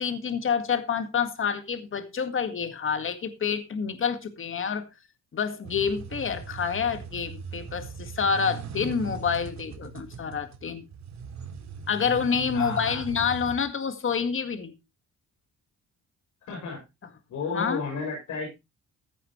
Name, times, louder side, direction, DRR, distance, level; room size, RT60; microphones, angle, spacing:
voice 1, 0.0-4.9 5.3-10.8 11.9-14.7 17.5-17.8, left 6 dB, 45° left, 1.9 m, -28 dB
sound 1, 5.6-13.7, right 6 dB, 65° right, 2.4 m, -39 dB
voice 2, 12.5-13.0 16.5-16.8 17.3-18.5, left 4 dB, 80° left, 6.7 m, -32 dB
15.5 x 8.5 x 3.2 m
cardioid pair, 90°, 30 cm